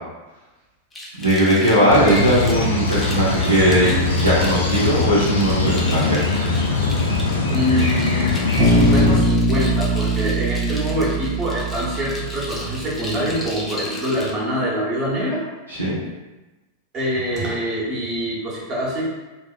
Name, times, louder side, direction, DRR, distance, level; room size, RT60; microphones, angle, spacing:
sound 1, 0.9-14.3, left 1 dB, 15° left, 0.5 m, -36 dB
voice 1, 1.2-6.9 15.7-16.0, equal, 90° right, -10 dB, 0.6 m, -19 dB
sound 2, 1.9-9.2, left 3 dB, 75° left, 0.3 m, -21 dB
voice 2, 7.5-8.3 8.6-15.4 16.9-19.1, equal, 35° right, -5 dB, 0.9 m, -24 dB
Bass guitar, 8.6-12.6, right 1 dB, 15° right, 1.1 m, -20 dB
2.7 x 2.0 x 2.3 m, 1.1 s
figure-of-eight pair, 90°, 0 cm